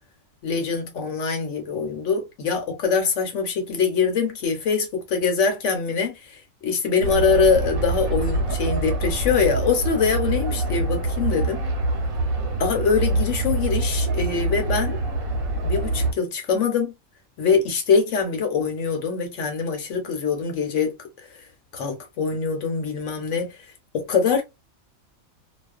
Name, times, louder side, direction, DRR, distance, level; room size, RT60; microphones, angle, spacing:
voice 1, 0.4-11.6 12.6-15.0 15.6-16.9 17.4-21.3 21.7-23.6 23.9-24.4, left 5 dB, 65° left, 1.0 m, -23 dB
sound 1, 7.0-16.1, right 2 dB, 85° right, 1.2 m, -25 dB
2.4 x 2.3 x 2.3 m
omnidirectional pair, 1.4 m